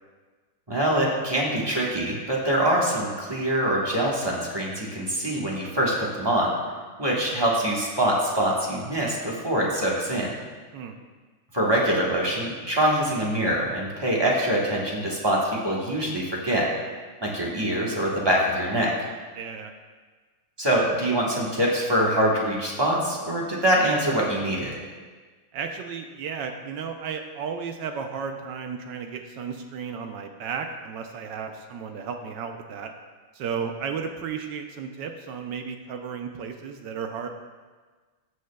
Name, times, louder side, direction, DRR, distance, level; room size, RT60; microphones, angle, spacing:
voice 1, 0.7-6.5 7.0-10.3 11.5-16.7 17.2-18.9 20.6-24.7, right 1 dB, 20° right, -4 dB, 0.7 m, -24 dB
voice 2, 19.4-19.7 25.5-32.9 33.3-37.3, right 6 dB, 75° right, 5 dB, 1.0 m, -34 dB
15.0 x 6.3 x 2.2 m, 1.4 s
omnidirectional pair, 2.4 m